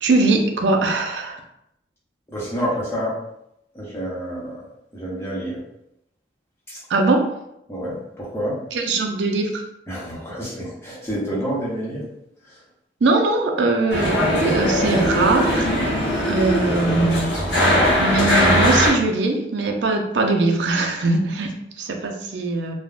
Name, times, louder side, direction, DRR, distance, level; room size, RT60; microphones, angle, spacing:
voice 1, 0.0-1.4 6.9-7.3 8.7-9.6 13.0-16.0 16.3-17.4 18.0-22.7, right 3 dB, 80° right, 3 dB, 0.5 m, -21 dB
voice 2, 2.3-3.2 3.7-4.6 4.9-5.6 6.7-6.8 7.7-8.6 9.9-12.0, equal, 15° left, -6 dB, 0.8 m, -28 dB
sound 1, 13.9-18.9, equal, 75° left, 0.8 m, -20 dB
3.3 x 2.1 x 2.4 m, 0.80 s
head